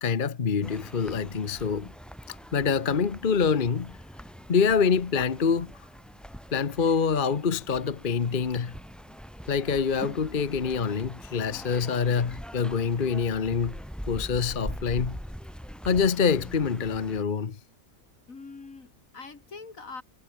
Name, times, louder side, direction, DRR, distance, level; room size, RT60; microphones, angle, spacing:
voice 1, 0.0-1.9 2.3-3.9 4.5-5.7 6.5-8.8 9.5-13.8 14.0-15.2 15.8-17.6, left 6 dB, 40° left, 1.2 m, -26 dB
sound 1, 0.6-17.2, equal, ahead, 2.8 m, -42 dB
voice 2, 18.3-20.0, left 4 dB, 70° left, 3.0 m, -43 dB
omnidirectional pair, 1.5 m